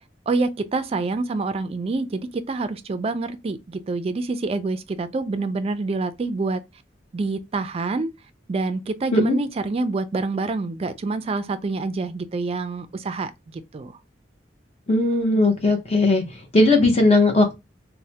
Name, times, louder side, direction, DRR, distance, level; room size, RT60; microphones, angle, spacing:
voice 1, 0.3-6.6 7.1-8.1 8.5-14.0, right 3 dB, 35° right, 0.3 m, -27 dB
voice 2, 14.9-16.2 16.5-17.5, left 2 dB, 35° left, 0.7 m, -18 dB
3.1 x 2.1 x 2.7 m
head